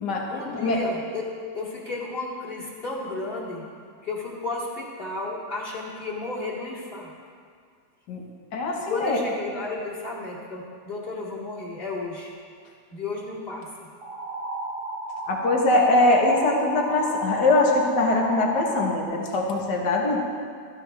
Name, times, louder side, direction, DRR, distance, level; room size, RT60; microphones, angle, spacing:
voice 1, 0.3-3.6 4.0-7.1 8.8-12.3 12.9-13.9, left 3 dB, 30° left, -4 dB, 2.4 m, -33 dB
voice 2, 8.5-9.2 15.3-20.2, left 2 dB, 70° left, 0 dB, 2.0 m, -22 dB
sound 1, 14.0-19.0, right 2 dB, 65° right, 1.7 m, -33 dB
16.0 x 13.5 x 3.5 m, 2.1 s
omnidirectional pair, 1.9 m